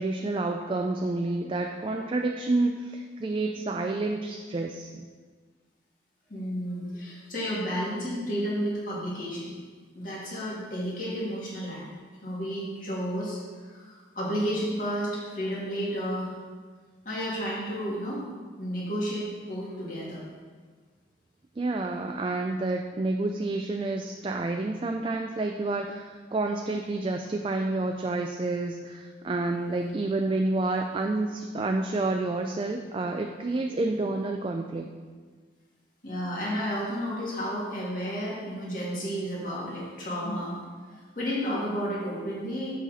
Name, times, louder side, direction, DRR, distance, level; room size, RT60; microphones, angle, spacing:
voice 1, 0.0-5.1 21.6-34.9, right 2 dB, 30° right, 3 dB, 0.3 m, -29 dB
voice 2, 6.3-9.5 9.9-11.8 12.2-13.4 13.6-16.3 17.0-18.2 18.6-20.2 29.5-29.9 36.0-40.6 40.9-42.7, equal, 45° left, -6 dB, 2.1 m, -32 dB
7.4 x 5.7 x 4.0 m, 1.5 s
head